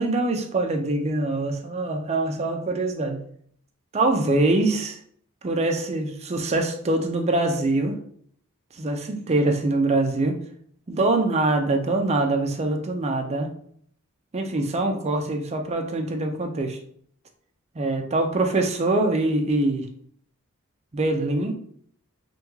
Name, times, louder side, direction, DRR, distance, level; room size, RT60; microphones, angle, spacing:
voice 1, 0.0-3.2 3.9-5.0 5.4-8.0 8.7-10.4 10.9-13.5 14.3-16.8 17.8-19.9 20.9-21.6, right 2 dB, 30° right, 4 dB, 0.4 m, -24 dB
3.5 x 2.2 x 3.0 m, 0.63 s
head